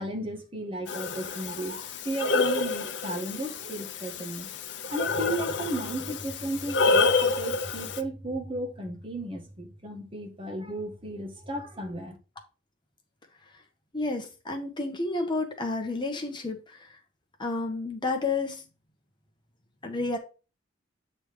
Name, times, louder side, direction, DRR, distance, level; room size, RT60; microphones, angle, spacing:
voice 1, 0.0-4.5 4.9-12.2, right 1 dB, 30° right, 1.6 m, -34 dB
Breathing, 0.9-8.0, left 4 dB, 65° left, 0.7 m, -28 dB
voice 2, 13.9-16.9 17.4-18.6 19.8-20.2, left 3 dB, 25° left, 1.0 m, -30 dB
8.7 x 3.3 x 4.9 m
head